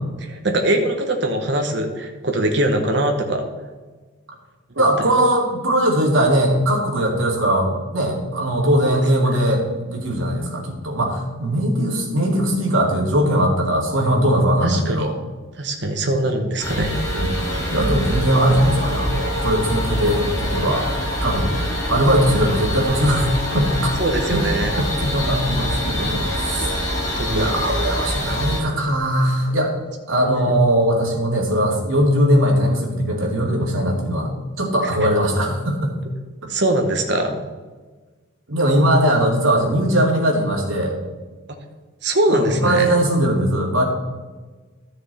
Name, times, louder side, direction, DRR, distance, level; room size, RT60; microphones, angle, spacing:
voice 1, 0.2-3.5 4.8-4.9 8.8-9.0 14.6-15.0 15.6-17.0 24.0-24.7 26.9-27.5 36.5-37.4 41.5-41.6 42.0-42.9, right 1 dB, 55° right, 4 dB, 1.2 m, -22 dB
voice 2, 4.7-15.2 17.1-20.9 21.2-21.5 21.9-23.3 23.5-23.9 24.3-24.4 24.7-24.8 25.1-26.9 27.3-29.7 30.1-34.3 34.6-35.9 38.5-40.9 42.3-43.8, right 1 dB, 85° right, -1 dB, 2.5 m, -20 dB
sound 1, 16.6-28.6, equal, 15° left, 2.0 m, -24 dB
13.0 x 6.6 x 4.2 m, 1.3 s
head